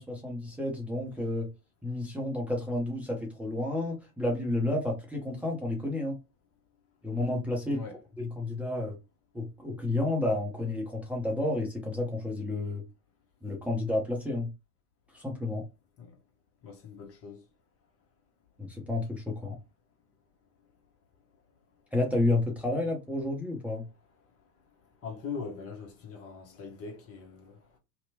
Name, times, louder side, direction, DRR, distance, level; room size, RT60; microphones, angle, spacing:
voice 1, 0.0-1.5 1.8-6.2 7.0-7.8 8.2-9.0 9.3-12.8 13.4-14.5 15.1-15.6 18.6-19.6 21.9-23.8, left 2 dB, 5° right, 0.7 m, -31 dB
voice 2, 16.6-17.4 22.7-22.8 25.0-27.8, left 5 dB, 30° left, 0.8 m, -41 dB
2.8 x 2.1 x 2.7 m
figure-of-eight pair, 80°, 46 cm